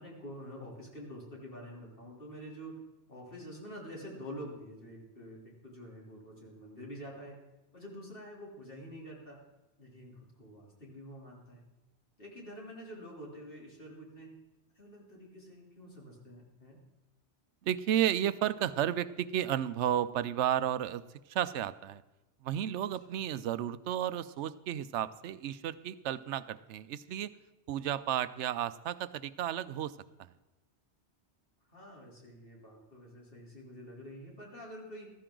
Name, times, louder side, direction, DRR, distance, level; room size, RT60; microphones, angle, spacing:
voice 1, 0.0-2.8 3.1-7.4 7.7-9.4 9.8-11.7 12.2-14.3 14.8-16.8 23.1-23.2 31.7-35.1, equal, 55° left, -3 dB, 3.6 m, -47 dB
voice 2, 17.6-21.0 21.3-22.0 22.4-27.3 27.7-30.3, right 10 dB, 85° right, 15 dB, 0.9 m, -32 dB
14.5 x 14.0 x 3.8 m, 1.0 s
omnidirectional pair, 1.2 m